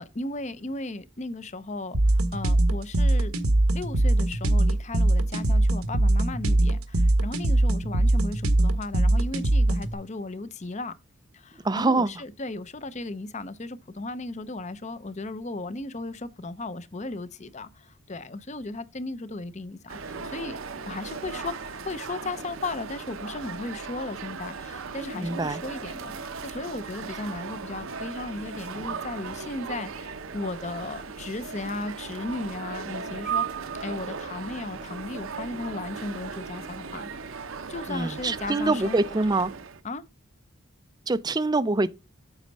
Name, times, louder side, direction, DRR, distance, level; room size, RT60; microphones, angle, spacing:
voice 1, 0.0-3.3 3.7-10.9 11.3-20.6 20.9-33.4 33.8-37.1 37.7-39.2 39.8-40.0, left 2 dB, 30° left, 0.6 m, -36 dB
sound 1, 1.9-9.9, right 1 dB, 90° right, 1.2 m, -22 dB
voice 2, 11.6-12.1 25.2-25.6 37.9-39.5 41.1-41.9, right 2 dB, 20° right, 0.4 m, -24 dB
sound 2, 19.9-39.8, right 5 dB, 70° right, 0.7 m, -37 dB
8.2 x 4.4 x 5.3 m
head